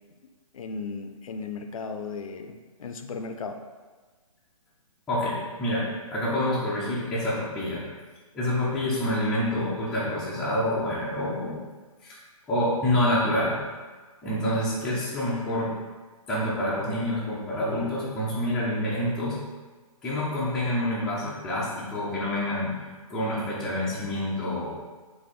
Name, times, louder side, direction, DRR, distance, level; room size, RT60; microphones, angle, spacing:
voice 1, 0.5-3.6, left 4 dB, 65° left, 6 dB, 0.4 m, -36 dB
voice 2, 5.1-5.9 6.1-7.8 8.3-11.6 12.0-12.2 12.5-13.6 14.2-15.7 16.3-19.4 20.0-22.7 23.1-24.7, left 1 dB, 5° left, -9 dB, 0.3 m, -27 dB
4.2 x 2.6 x 3.6 m, 1.4 s
hypercardioid pair, 145°, 19 cm